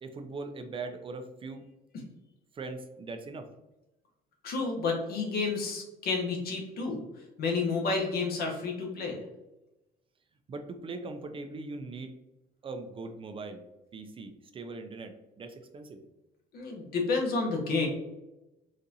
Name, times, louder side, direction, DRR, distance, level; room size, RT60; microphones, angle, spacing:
voice 1, 0.0-1.6 2.5-3.5 10.5-12.1 12.6-13.6 13.9-16.0, right 3 dB, 30° right, 6 dB, 0.4 m, -40 dB
voice 2, 4.4-7.1 7.4-9.2 16.5-17.9, left 4 dB, 65° left, 1 dB, 1.0 m, -30 dB
3.9 x 2.5 x 2.7 m, 0.96 s
cardioid pair, 110°, 17 cm